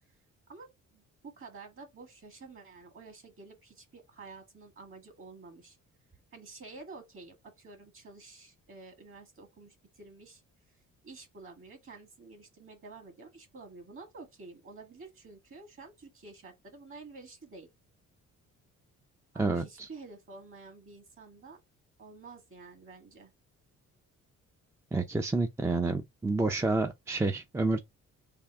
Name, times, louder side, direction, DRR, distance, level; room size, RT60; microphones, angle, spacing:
voice 1, 0.5-5.8 6.3-10.4 11.0-17.7 19.3-21.6 22.0-23.3, right 3 dB, 45° right, 1.7 m, -50 dB
voice 2, 19.4-19.9 24.9-27.8, right 3 dB, 10° right, 0.4 m, -29 dB
3.5 x 2.6 x 3.4 m
cardioid pair, 90°, 30 cm